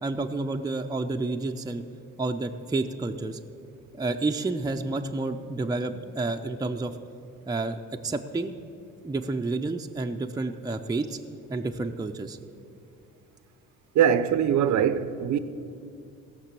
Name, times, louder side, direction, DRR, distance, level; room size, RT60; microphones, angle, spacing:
voice 1, 0.0-1.8 2.2-3.4 3.9-7.0 7.5-8.5 9.0-11.2 11.5-12.4, right 3 dB, 15° right, 0.5 m, -30 dB
voice 2, 13.9-15.4, right 9 dB, 70° right, 0.7 m, -22 dB
16.5 x 6.0 x 7.5 m
cardioid pair, 90°, 30 cm